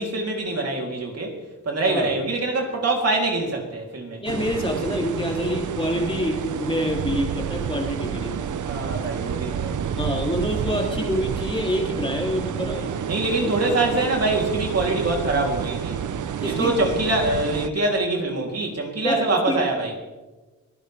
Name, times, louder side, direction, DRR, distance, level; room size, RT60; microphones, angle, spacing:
voice 1, 0.0-1.3 1.6-4.2 8.6-10.0 12.8-16.0 16.4-19.9, right 2 dB, 55° right, 0 dB, 3.4 m, -24 dB
voice 2, 4.2-8.3 10.0-13.1 13.7-14.0 16.4-16.7 19.0-19.6, equal, 15° left, -1 dB, 3.2 m, -26 dB
sound 1, 4.3-17.7, right 8 dB, 80° right, 0.8 m, -29 dB
23.0 x 16.0 x 3.5 m, 1.2 s
wide cardioid pair, 115°, 30 cm